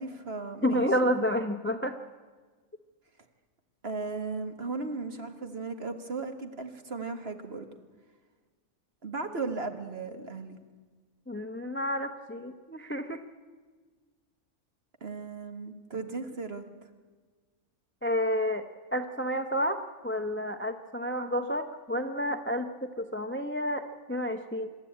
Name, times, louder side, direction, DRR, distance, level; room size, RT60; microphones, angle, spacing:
voice 1, 0.0-1.1 3.8-7.6 9.0-10.6 15.0-16.6, right 4 dB, 45° right, 7 dB, 1.7 m, -36 dB
voice 2, 0.6-2.0 11.3-13.2 18.0-19.8 20.0-24.7, equal, 10° left, 8 dB, 0.7 m, -30 dB
26.0 x 12.5 x 8.7 m, 1.4 s
omnidirectional pair, 1.6 m